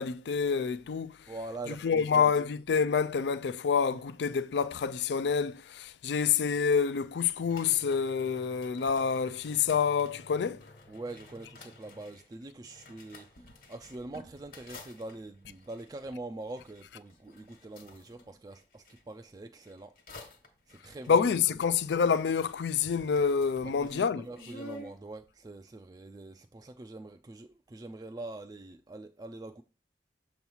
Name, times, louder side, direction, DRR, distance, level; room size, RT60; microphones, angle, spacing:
voice 1, 0.0-1.2 1.8-10.7 21.1-24.3, left 6 dB, 75° left, 0.4 m, -27 dB
voice 2, 1.3-2.3 10.9-19.9 20.7-21.3 23.6-29.6, right 2 dB, 20° right, 0.3 m, -44 dB
sound 1, 7.4-19.0 19.6-22.5 22.7-25.0, left 1 dB, 55° left, 1.3 m, -52 dB
6.9 x 3.0 x 5.5 m
head